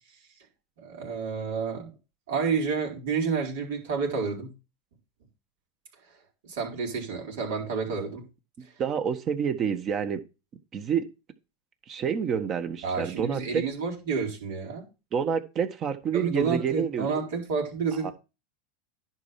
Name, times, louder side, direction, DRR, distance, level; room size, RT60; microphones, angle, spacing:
voice 1, 0.8-1.9 2.3-4.5 6.4-8.2 12.8-14.9 16.1-18.1, right 5 dB, 75° right, 1 dB, 4.1 m, -29 dB
voice 2, 8.8-10.2 10.7-11.1 11.9-13.6 15.1-17.1 18.0-18.1, right 7 dB, 40° right, 9 dB, 1.4 m, -28 dB
11.0 x 4.4 x 5.8 m, 0.29 s
hypercardioid pair, 100°, 0 cm